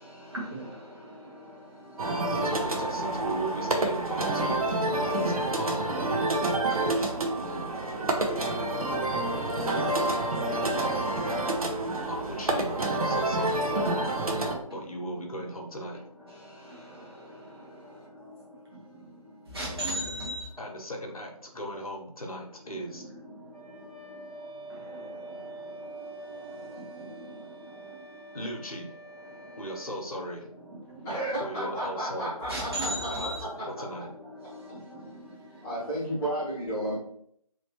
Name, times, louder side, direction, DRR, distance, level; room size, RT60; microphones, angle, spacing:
voice 1, 0.0-2.7 6.1-12.1 12.7-13.3 13.9-15.1 16.3-17.7 18.2-20.6 22.9-28.4 29.2-29.6 30.5-31.2 32.2-35.9 36.7-36.9, right 1 dB, 40° right, 0.9 m, -42 dB
sound 1, 2.0-14.6, right 2 dB, 70° right, 0.8 m, -28 dB
voice 2, 2.3-5.9 12.1-12.8 13.0-13.7 14.7-16.0 20.6-23.0 28.3-28.9 29.6-30.5 31.4-32.3 33.1-33.3 33.7-34.1 35.8-36.1, equal, 65° left, 1.0 m, -37 dB
Wind instrument woodwind instrument, 23.5-30.1, right 2 dB, 85° right, 1.2 m, -45 dB
voice 3, 31.0-33.5 33.8-33.9 35.6-37.0, right 1 dB, 10° left, 0.9 m, -32 dB
3.1 x 2.9 x 2.9 m
figure-of-eight pair, 155°, 19 cm